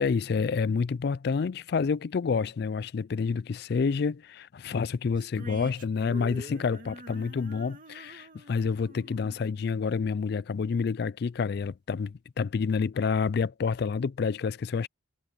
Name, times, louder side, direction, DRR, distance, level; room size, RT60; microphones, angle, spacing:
voice 1, 0.0-14.9, left 5 dB, 55° left, 0.3 m, -28 dB
sound 1, 5.2-10.5, right 1 dB, 45° right, 2.6 m, -47 dB
head